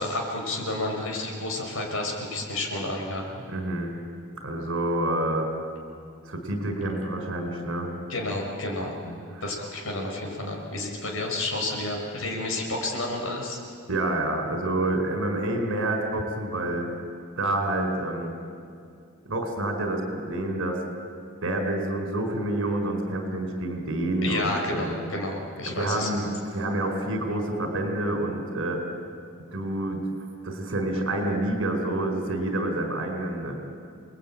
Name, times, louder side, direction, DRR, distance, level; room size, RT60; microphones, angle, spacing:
voice 1, 0.0-3.2 8.1-8.9 9.4-13.6 24.2-26.3, left 2 dB, 70° left, 1 dB, 5.2 m, -30 dB
voice 2, 3.5-3.9 4.4-5.5 6.3-7.9 9.0-9.4 13.9-16.9 17.4-18.3 19.2-20.8 21.4-24.9 25.7-26.3 26.5-28.8 29.4-30.0 30.4-33.5, right 1 dB, 65° right, 4 dB, 4.8 m, -28 dB
28.5 x 20.5 x 8.9 m, 2.4 s
head